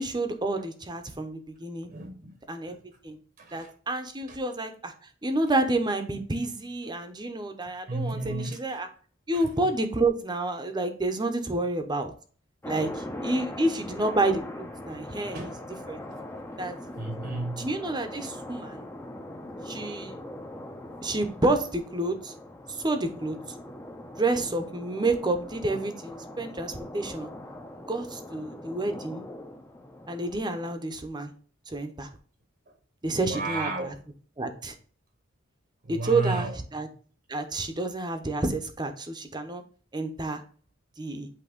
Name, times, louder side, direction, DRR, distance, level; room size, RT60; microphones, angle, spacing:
voice 1, 0.0-1.9 2.5-2.8 3.0-3.2 3.5-4.9 5.2-8.9 9.3-12.1 12.7-15.4 15.9-16.0 16.6-16.7 17.6-18.8 19.7-20.2 21.0-22.3 22.7-23.4 24.2-27.3 27.9-29.2 30.1-31.3 31.7-32.1 33.0-33.9 34.4-34.7 35.9-36.9 37.3-39.6 39.9-40.4 41.0-41.3, right 2 dB, 20° right, 0.8 m, -29 dB
voice 2, 1.9-2.3 2.7-2.8 3.4-3.7 4.3-4.4 7.6-8.6 9.3-9.5 15.3-15.7 17.0-17.7 33.1-34.1 35.8-36.5, right 2 dB, 50° right, 1.0 m, -33 dB
sound 1, 12.6-30.7, left 1 dB, 10° left, 0.7 m, -41 dB
8.5 x 2.9 x 5.1 m
head